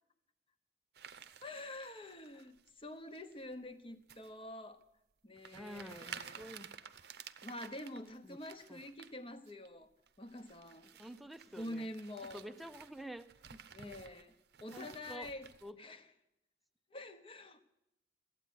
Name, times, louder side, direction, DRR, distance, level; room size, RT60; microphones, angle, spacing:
sound 1, 0.9-2.7 3.1-3.5 4.1-4.3 4.8-4.9 5.4-9.1 9.5-9.7 10.1-15.7, right 8 dB, 60° right, 0.7 m, -53 dB
voice 1, 1.4-4.8 5.2-6.5 7.2-9.9 10.2-10.9 11.5-12.5 13.7-14.3 14.6-15.5 15.8-16.1 16.9-17.6, left 1 dB, 30° left, 1.0 m, -47 dB
voice 2, 5.5-6.7 8.2-8.4 8.7-8.8 11.0-11.9 12.3-13.6 14.7-15.3 15.6-15.8, equal, ahead, 0.5 m, -49 dB
14.0 x 9.1 x 9.5 m
head